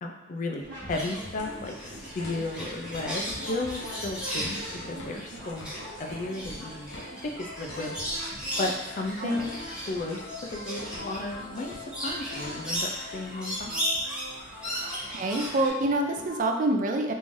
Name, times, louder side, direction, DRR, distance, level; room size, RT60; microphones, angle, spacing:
voice 1, 0.0-6.9 7.2-8.0 8.6-9.5 9.9-11.7 12.0-13.8, left 2 dB, 40° left, 2 dB, 0.4 m, -34 dB
sound 1, 0.6-16.4, equal, 65° right, 1.2 m, -43 dB
sound 2, 0.9-15.7, equal, 5° right, 1.0 m, -36 dB
sound 3, 1.3-8.8 9.0-12.8 13.1-13.2, left 1 dB, 65° left, 0.9 m, -44 dB
voice 2, 9.2-9.5 14.8-17.1, right 2 dB, 45° right, 4 dB, 0.4 m, -27 dB
3.6 x 3.2 x 2.6 m, 1.0 s
head